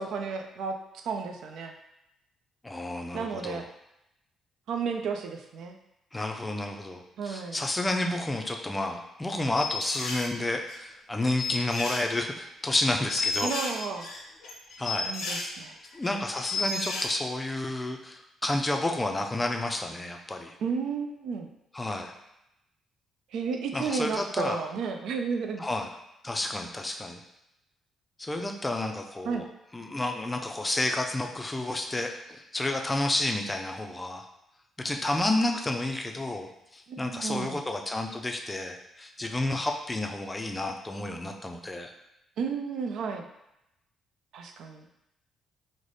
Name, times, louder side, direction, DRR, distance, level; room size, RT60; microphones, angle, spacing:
voice 1, 0.0-1.7 3.1-3.7 4.7-5.8 7.2-7.6 13.4-14.1 15.1-15.8 20.6-21.5 23.3-25.7 29.3-29.5 36.9-37.6 42.4-43.3 44.3-44.9, right 5 dB, 75° right, 5 dB, 0.4 m, -32 dB
voice 2, 2.6-3.6 6.1-13.5 14.8-15.5 15.9-20.5 21.7-22.1 23.7-24.6 25.6-25.9 26.2-27.2 28.2-29.5 29.7-34.3 34.8-41.9, left 2 dB, 15° left, 3 dB, 0.4 m, -30 dB
sound 1, 9.6-10.3 10.7-10.8 11.2-12.4 12.7-12.8 13.1-15.4 15.8-16.1 16.4-17.1, left 3 dB, 85° left, 0.7 m, -32 dB
3.2 x 2.1 x 3.9 m, 0.86 s
cardioid pair, 90°, 0 cm